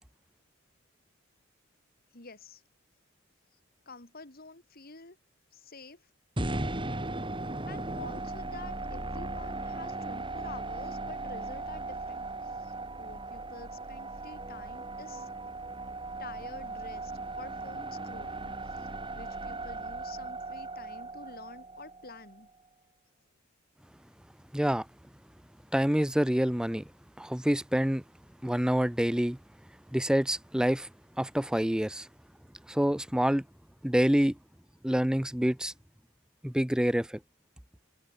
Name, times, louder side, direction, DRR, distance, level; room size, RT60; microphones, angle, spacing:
voice 1, 2.1-2.6 3.8-5.2 5.5-6.1 7.7-15.3 16.2-17.1 17.4-22.5, left 3 dB, 45° left, 3.2 m, -48 dB
sound 1, 6.4-22.5, right 2 dB, 25° right, 3.1 m, -37 dB
voice 2, 24.5-24.9 25.7-26.8 27.2-28.0 28.4-29.4 29.9-30.9 31.2-32.1 32.7-33.4 33.8-34.4 34.8-35.7 36.4-37.2, equal, 5° right, 0.5 m, -27 dB
head